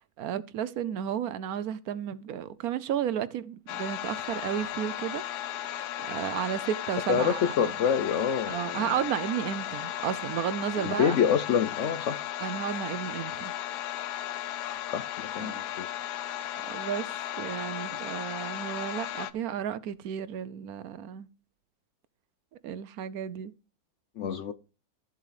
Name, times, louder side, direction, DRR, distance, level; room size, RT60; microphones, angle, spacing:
voice 1, 0.0-5.2 5.7-7.7 8.5-11.2 12.4-13.5 15.4-15.6 16.6-17.1 17.4-21.3 22.6-23.5, right 9 dB, 70° right, 1.0 m, -33 dB
sound 1, 3.7-19.3, left 12 dB, 85° left, 1.3 m, -35 dB
voice 2, 7.1-8.9 10.8-12.3 14.9-15.9 24.2-24.5, left 7 dB, 60° left, 0.8 m, -27 dB
14.5 x 7.5 x 3.2 m
omnidirectional pair, 1.7 m